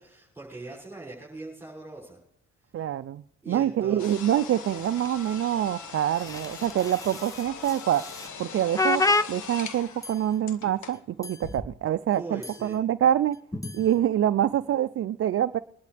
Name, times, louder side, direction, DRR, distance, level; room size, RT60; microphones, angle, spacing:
voice 1, 0.0-2.2 3.4-4.1 12.1-12.8, right 2 dB, 10° right, 6.5 m, -41 dB
voice 2, 2.7-8.1 8.4-9.0 9.3-13.4 13.7-15.6, right 11 dB, 50° right, 0.5 m, -26 dB
sound 1, 4.0-11.0 11.4-11.6, left 6 dB, 70° left, 1.8 m, -41 dB
sound 2, 4.1-5.8 6.1-8.3 8.7-9.3 9.7-9.8 10.0-10.4 10.9-11.0 11.2-11.6 12.1-12.2 12.4-12.8 13.3-14.0, left 3 dB, 10° left, 0.7 m, -30 dB
23.5 x 11.5 x 3.4 m
cardioid pair, 90°, 30 cm